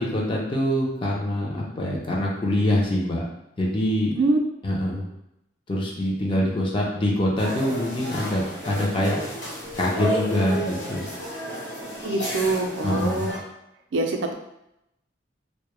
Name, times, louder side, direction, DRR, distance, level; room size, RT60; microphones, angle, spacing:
voice 1, 0.0-3.2 3.6-4.1 4.6-5.1 5.7-9.2 9.8-11.0 12.8-13.3, left 1 dB, 30° left, -3 dB, 0.5 m, -24 dB
sound 1, 7.4-13.4, equal, 70° left, 1.1 m, -32 dB
voice 2, 12.0-13.3 13.9-14.3, right 2 dB, 80° right, 3 dB, 0.4 m, -24 dB
2.1 x 2.1 x 3.0 m, 0.84 s
head